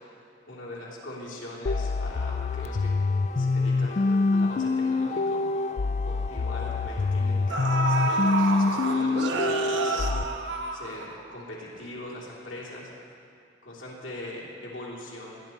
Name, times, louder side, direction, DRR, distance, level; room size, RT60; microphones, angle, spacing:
voice 1, 0.0-3.0 3.4-5.6 6.0-12.9 13.6-15.4, left 1 dB, 80° left, -5 dB, 3.3 m, -41 dB
sound 1, 1.7-10.2, left 3 dB, 35° left, 0.3 m, -25 dB
sound 2, 5.3-5.4 5.8-6.0 7.0-7.1 7.5-11.4 11.8-11.9, right 3 dB, 65° right, 1.0 m, -29 dB
19.5 x 11.0 x 4.5 m, 2.5 s
head